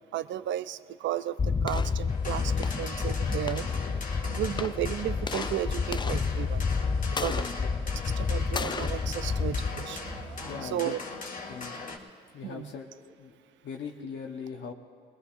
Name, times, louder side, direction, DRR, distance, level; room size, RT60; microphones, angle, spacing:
voice 1, 0.1-3.7 4.2-6.7 7.2-7.4 8.2-11.0 12.4-12.7, right 12 dB, 70° right, 14 dB, 0.5 m, -34 dB
sound 1, 1.4-10.5, left 5 dB, 25° left, 0.4 m, -30 dB
sound 2, 2.1-12.0, left 3 dB, 40° left, 1.8 m, -40 dB
voice 2, 7.1-7.7 10.4-11.0 11.5-11.8 12.3-13.3 13.6-14.7, left 6 dB, 65° left, 0 dB, 1.1 m, -40 dB
21.5 x 20.5 x 2.5 m, 2.3 s
cardioid pair, 90°, 20 cm